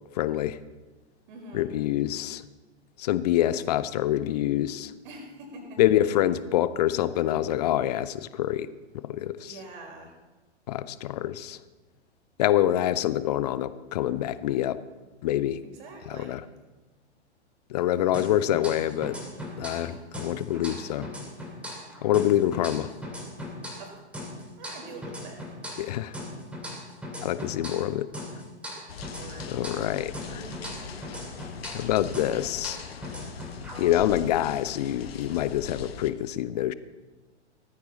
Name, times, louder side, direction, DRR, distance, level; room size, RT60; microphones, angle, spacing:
voice 1, 0.1-0.6 1.5-2.4 3.0-4.9 5.8-8.7 9.0-9.5 10.7-11.6 12.4-14.8 15.2-15.6 16.1-16.4 17.7-19.2 19.6-21.1 22.0-22.9 25.8-26.1 27.2-28.1 29.5-30.0 31.7-32.8 33.8-36.7, left 12 dB, 35° left, 16 dB, 0.6 m, -26 dB
voice 2, 1.3-1.7 5.0-6.1 9.4-10.1 15.6-16.4 19.8-20.0 20.5-21.1 23.8-24.0 24.3-25.4 29.2-30.0 30.3-31.1, right 2 dB, 45° right, 1 dB, 4.7 m, -45 dB
sound 1, 18.1-19.9 20.1-23.9 24.1-27.9 28.1-31.9 32.1-34.1, left 1 dB, 5° right, 2.9 m, -39 dB
sound 2, 28.9-36.1, left 7 dB, 55° left, 1.2 m, -41 dB
18.0 x 14.5 x 4.1 m, 1.2 s
figure-of-eight pair, 110°, 35 cm